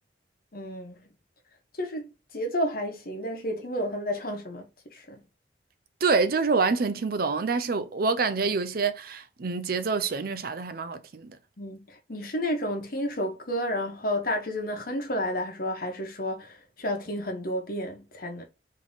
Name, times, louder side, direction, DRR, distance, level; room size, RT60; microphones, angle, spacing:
voice 1, 0.5-1.0 1.8-5.2 11.6-18.4, equal, 55° left, 1.2 m, -31 dB
voice 2, 6.0-11.4, right 4 dB, 55° right, 0.5 m, -26 dB
3.6 x 3.2 x 4.0 m
head